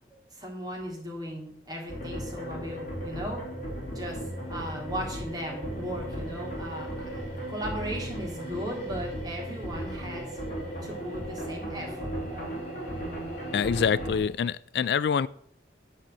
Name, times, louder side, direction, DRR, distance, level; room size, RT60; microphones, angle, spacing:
voice 1, 0.3-3.4 3.9-10.4 10.8-12.6, equal, 20° right, -2 dB, 3.3 m, -37 dB
sound 1, 1.9-14.2, right 1 dB, 45° left, 4.5 m, -36 dB
voice 2, 13.5-15.3, left 7 dB, 65° left, 18 dB, 0.3 m, -26 dB
10.0 x 5.4 x 7.6 m, 0.66 s
head